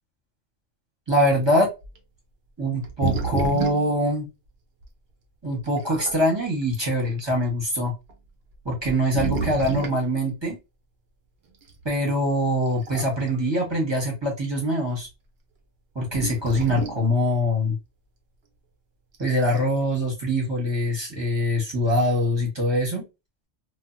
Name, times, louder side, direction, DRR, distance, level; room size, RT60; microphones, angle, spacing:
voice 1, 1.1-1.7 2.6-4.3 5.4-7.9 8.6-10.6 11.8-15.1 15.9-17.8 19.2-23.0, equal, 25° right, -2 dB, 1.1 m, -23 dB
sound 1, 1.8-2.0 2.8-4.0 4.8-4.9 5.6-6.2 7.0-7.2 8.1-8.2 8.8-10.0 11.7-11.8 12.7-13.4 13.7-13.8 16.1-17.1 19.1-19.7, right 4 dB, 60° right, 0.8 m, -30 dB
2.8 x 2.4 x 2.4 m, 0.25 s
omnidirectional pair, 1.2 m